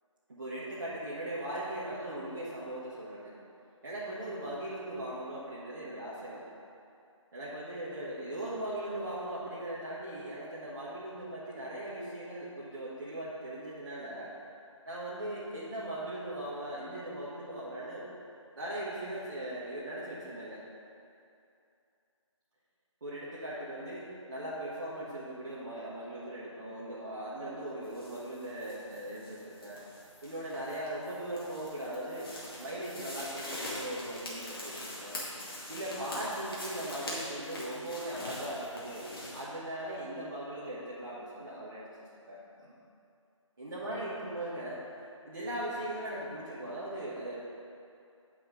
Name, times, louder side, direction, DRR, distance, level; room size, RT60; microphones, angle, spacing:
voice 1, 0.3-3.3 3.8-6.4 7.3-14.3 14.9-18.0 18.6-20.6 23.0-29.8 30.2-32.3 32.6-35.2 35.7-39.0 39.3-41.9 42.3-42.7 43.6-44.8 45.2-47.4, right 1 dB, 40° right, -10 dB, 1.4 m, -39 dB
sound 1, 27.8-39.4, left 1 dB, 45° left, 2.0 m, -43 dB
9.2 x 5.0 x 5.2 m, 2.6 s
figure-of-eight pair, 155°, 17 cm